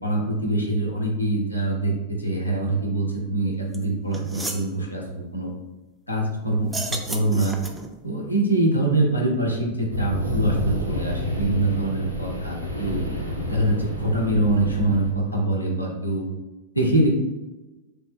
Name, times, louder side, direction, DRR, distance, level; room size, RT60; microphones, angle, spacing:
voice 1, 0.0-5.5 6.1-7.5 8.0-13.1 13.5-16.3 16.7-17.1, right 2 dB, 85° left, -1 dB, 0.6 m, -24 dB
sound 1, 3.7-3.8 4.1-4.7 6.6-7.9, right 2 dB, 10° right, 0.3 m, -32 dB
sound 2, 9.9-15.1, left 1 dB, 90° right, 0.5 m, -29 dB
3.3 x 2.1 x 3.2 m, 1.1 s
figure-of-eight pair, 90°, 0 cm